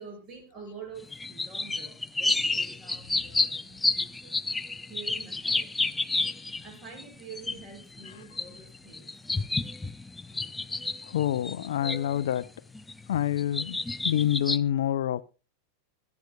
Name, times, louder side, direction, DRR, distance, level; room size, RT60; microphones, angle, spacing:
voice 1, 0.0-4.4 4.7-5.8 6.6-9.1, right 4 dB, 30° right, 7.4 m, -47 dB
sound 1, 1.0-7.0 7.3-12.5 12.8-14.6, left 2 dB, 10° left, 0.5 m, -30 dB
voice 2, 11.0-12.5 13.1-15.2, left 11 dB, 60° left, 0.5 m, -27 dB
24.0 x 9.6 x 2.3 m
figure-of-eight pair, 90°, 0 cm